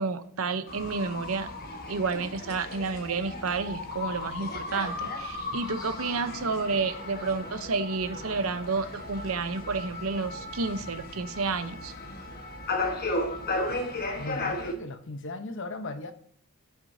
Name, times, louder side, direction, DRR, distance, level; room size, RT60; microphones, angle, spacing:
voice 1, 0.0-1.5 1.9-11.9, right 4 dB, 85° right, 0.8 m, -30 dB
sound 1, 0.7-14.7, left 2 dB, 50° left, 1.3 m, -35 dB
voice 2, 14.2-16.1, left 2 dB, 65° left, 0.9 m, -37 dB
17.0 x 6.1 x 2.7 m
head